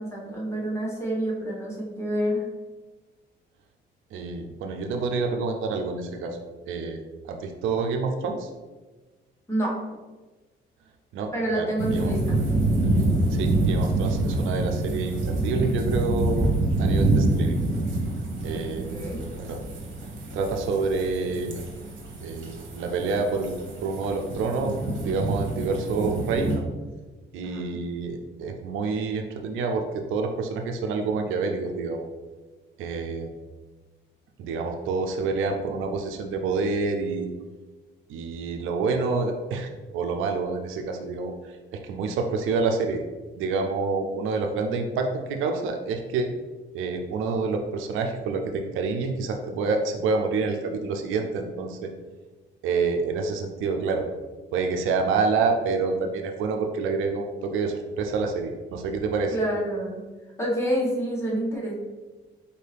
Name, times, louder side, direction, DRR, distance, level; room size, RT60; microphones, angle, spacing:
voice 1, 0.0-2.4 9.5-9.7 11.3-12.4 18.9-19.2 27.4-27.8 59.3-60.0 60.4-61.7, right 1 dB, 15° left, -5 dB, 1.4 m, -28 dB
voice 2, 4.1-7.0 7.3-8.5 11.1-11.7 11.9-12.1 13.3-16.5 16.8-17.6 18.4-19.0 19.4-19.6 20.3-21.6 22.2-23.5 23.8-24.8 25.0-26.6 27.3-32.1 32.8-33.3 34.4-37.3 38.1-41.3 41.7-43.0 43.4-46.3 46.7-51.9 52.6-54.1 54.5-59.3, right 4 dB, 85° right, 4 dB, 0.5 m, -27 dB
sound 1, 11.8-26.6, right 2 dB, 70° right, 1.0 m, -26 dB
4.4 x 2.7 x 3.4 m, 1.2 s
cardioid pair, 90°, 20 cm